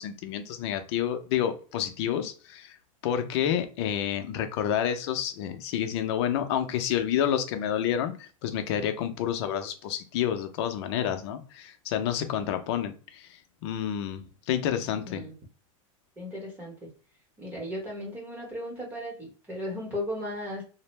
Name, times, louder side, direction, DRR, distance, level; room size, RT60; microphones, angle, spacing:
voice 1, 0.0-2.7 3.0-13.3 13.6-15.2, left 9 dB, 50° left, 7 dB, 0.5 m, -29 dB
voice 2, 14.8-15.3 16.2-16.9 17.4-20.6, left 1 dB, 10° right, -2 dB, 0.9 m, -36 dB
2.5 x 2.0 x 3.1 m, 0.37 s
supercardioid pair, 155°, 17 cm